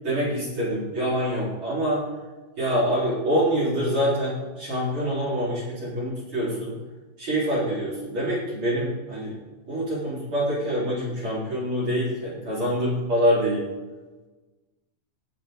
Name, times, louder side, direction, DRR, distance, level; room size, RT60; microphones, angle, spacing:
voice 1, 0.0-2.0 2.6-6.8 7.2-9.3 9.7-13.6, equal, 25° right, -8 dB, 3.9 m, -25 dB
19.0 x 7.3 x 3.7 m, 1.2 s
omnidirectional pair, 6.0 m